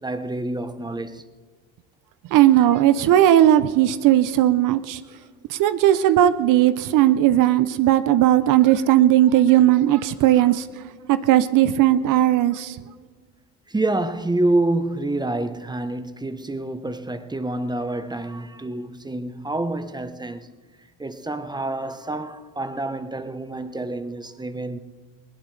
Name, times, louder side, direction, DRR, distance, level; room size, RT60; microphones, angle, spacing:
voice 1, 0.0-1.2 10.4-10.5 13.7-20.5 21.0-24.8, right 2 dB, 10° right, 1.0 m, -27 dB
voice 2, 2.3-5.0 5.5-10.7 11.1-12.8, right 12 dB, 60° right, 0.8 m, -17 dB
20.5 x 18.5 x 3.3 m
supercardioid pair, 90°, 36 cm